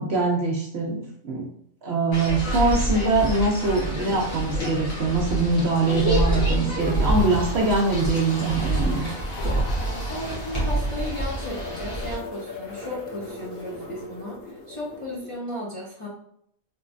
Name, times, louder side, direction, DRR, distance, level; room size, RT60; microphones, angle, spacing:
voice 1, 0.0-1.5 1.8-9.1, right 3 dB, 60° right, 0 dB, 0.7 m, -23 dB
sound 1, 2.1-12.2, right 1 dB, 70° left, 1.6 m, -27 dB
sound 2, 6.3-8.3, equal, 10° left, 1.0 m, -44 dB
sound 3, 6.8-15.4, left 2 dB, 50° left, 1.0 m, -39 dB
voice 2, 9.8-14.4 14.7-16.1, left 1 dB, 35° left, -6 dB, 0.6 m, -35 dB
3.7 x 3.0 x 2.5 m, 0.69 s
omnidirectional pair, 1.5 m